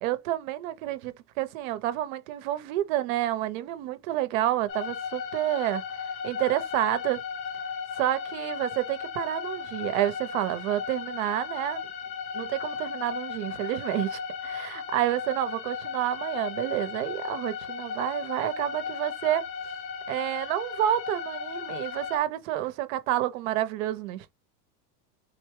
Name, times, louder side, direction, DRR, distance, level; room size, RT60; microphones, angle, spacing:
voice 1, 0.0-5.8 6.2-7.2 8.0-11.9 12.3-19.4 20.1-24.3, right 13 dB, 60° right, 0.8 m, -29 dB
sound 1, 4.7-22.2, left 6 dB, 60° left, 1.2 m, -36 dB
4.0 x 2.2 x 3.0 m
supercardioid pair, 155°, 44 cm